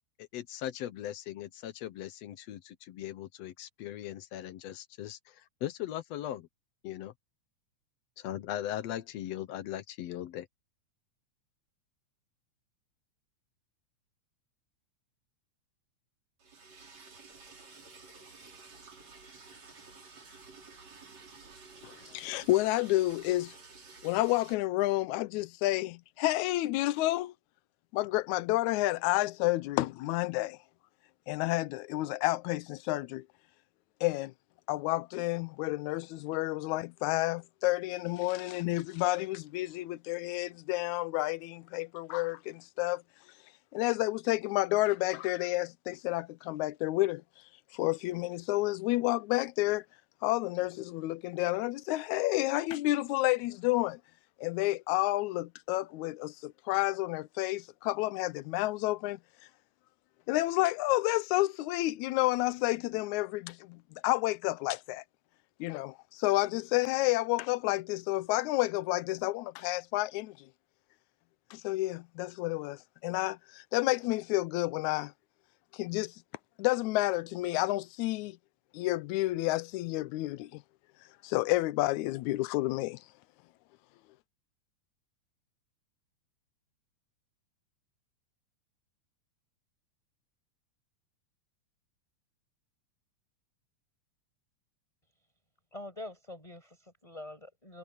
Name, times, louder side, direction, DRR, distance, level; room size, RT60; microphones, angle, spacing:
voice 1, 0.2-5.2 5.6-6.5 6.8-7.1 8.2-10.5, left 12 dB, 70° left, 1.8 m, -39 dB
Liquid, 16.4-24.5, right 4 dB, 60° right, 6.1 m, -52 dB
voice 2, 21.8-23.5 24.0-27.3 27.9-30.6 31.3-33.2 34.0-34.3 34.7-43.0 43.7-47.2 47.7-49.9 50.2-54.0 54.4-59.2 60.3-65.0 65.6-70.4 71.5-75.1 75.7-76.2 76.6-78.4 78.7-80.6 81.2-83.0, left 18 dB, 85° left, 2.0 m, -30 dB
voice 3, 95.7-97.8, left 1 dB, 10° left, 7.4 m, -45 dB
omnidirectional pair, 3.4 m